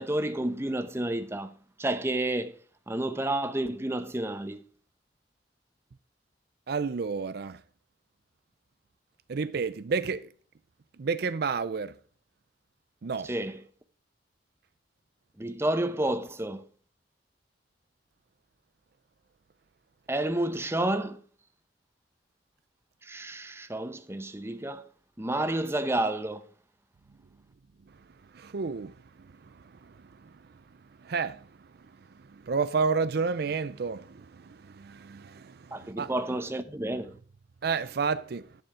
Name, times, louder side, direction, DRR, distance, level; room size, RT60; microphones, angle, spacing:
voice 1, 0.0-2.6 2.9-4.6 13.2-13.6 15.4-16.7 20.1-21.2 23.0-24.9 25.2-26.5 35.7-37.2, right 1 dB, 15° right, 0.8 m, -30 dB
voice 2, 6.7-7.6 9.3-10.2 11.0-11.9 13.0-13.3 28.3-28.9 31.0-31.4 32.5-36.1 37.6-38.5, right 5 dB, 60° right, 0.5 m, -30 dB
11.0 x 6.9 x 4.9 m
head